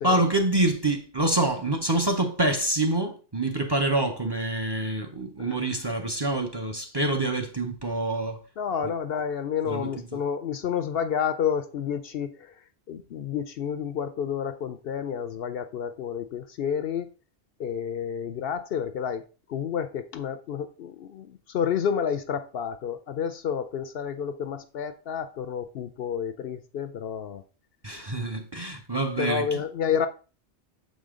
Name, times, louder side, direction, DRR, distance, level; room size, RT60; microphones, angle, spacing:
voice 1, 0.0-8.4 9.7-10.2 27.8-29.5, right 2 dB, 25° right, 0.8 m, -26 dB
voice 2, 8.6-12.6 12.9-17.1 17.6-27.4 29.2-30.1, left 7 dB, 65° left, 0.7 m, -30 dB
6.8 x 5.2 x 3.7 m
omnidirectional pair, 1.2 m